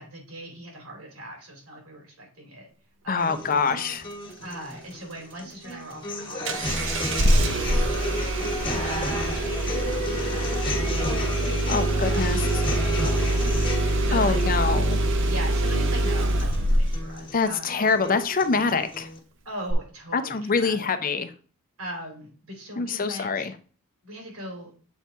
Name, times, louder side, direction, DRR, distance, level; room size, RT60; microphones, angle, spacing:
voice 1, 0.0-2.7 3.0-3.6 4.4-7.0 7.2-8.3 8.7-14.6 15.2-17.9 19.4-20.9 21.8-23.5 24.0-24.7, right 1 dB, 90° right, 1 dB, 3.2 m, -41 dB
voice 2, 3.1-4.0 11.7-12.4 14.1-15.0 17.3-19.1 20.1-21.3 22.8-23.5, left 4 dB, 40° left, 10 dB, 0.6 m, -25 dB
sound 1, 3.2-19.2, left 1 dB, 25° left, 1.4 m, -33 dB
Engine starting, 6.4-17.1 19.7-19.8, right 1 dB, 60° right, 0.8 m, -24 dB
7.2 x 4.3 x 3.5 m, 0.40 s
head